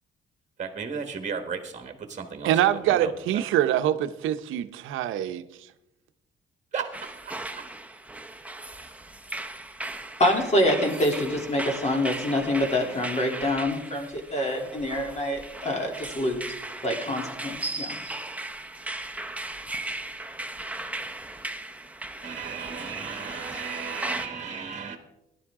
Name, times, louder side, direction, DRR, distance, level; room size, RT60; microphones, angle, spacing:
voice 1, 0.6-3.1 6.7-7.7 22.2-25.0, right 6 dB, 35° right, 1.5 m, -35 dB
voice 2, 2.4-5.4, right 11 dB, 85° right, 0.7 m, -24 dB
sound 1, 6.9-24.3, right 2 dB, 5° right, 0.9 m, -37 dB
voice 3, 10.2-16.6 16.8-17.9, left 1 dB, 35° left, 3.0 m, -26 dB
15.0 x 11.0 x 3.6 m
cardioid pair, 90°, 20 cm